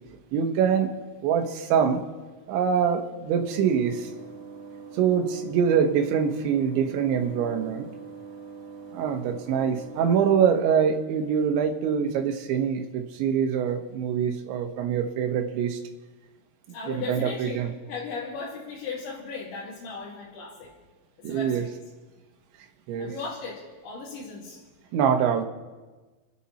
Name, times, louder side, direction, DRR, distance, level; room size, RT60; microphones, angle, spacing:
voice 1, 0.3-0.9 1.2-2.0 2.5-4.1 5.0-7.9 8.9-15.8 16.9-17.7 21.2-21.7 22.9-23.1 24.9-25.4, right 7 dB, 85° right, 5 dB, 3.6 m, -24 dB
sound 1, 3.4-10.6, right 5 dB, 50° right, 7.2 m, -43 dB
voice 2, 16.7-17.6 17.9-20.7 21.2-21.7 23.0-24.6, left 4 dB, 80° left, -7 dB, 5.0 m, -37 dB
29.5 x 9.9 x 4.2 m, 1.3 s
omnidirectional pair, 5.2 m